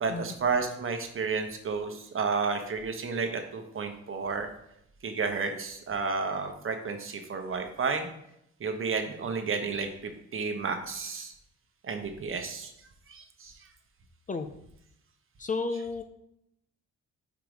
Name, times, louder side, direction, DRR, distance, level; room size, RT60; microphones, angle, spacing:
voice 1, 0.0-4.5 5.0-8.1 8.6-11.3 11.8-12.7 13.1-13.5, right 5 dB, 45° right, 5 dB, 1.1 m, -31 dB
voice 2, 15.4-16.0, left 4 dB, 25° left, 8 dB, 0.5 m, -32 dB
4.8 x 4.5 x 5.1 m, 0.77 s
cardioid pair, 90°, 30 cm